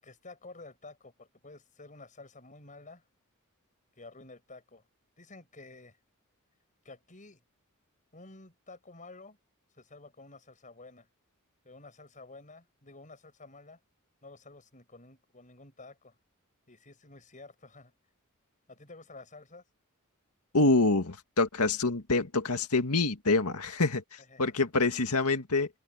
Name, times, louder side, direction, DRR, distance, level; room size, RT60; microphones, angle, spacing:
voice 1, 0.0-3.1 4.0-4.9 5.2-6.0 6.8-7.4 8.1-9.4 9.7-11.1 11.6-13.8 14.2-16.2 16.7-17.9 18.7-19.6 24.2-24.5, left 3 dB, 35° left, 6.8 m, -51 dB
voice 2, 20.5-25.7, left 3 dB, 85° left, 2.0 m, -26 dB
open air
head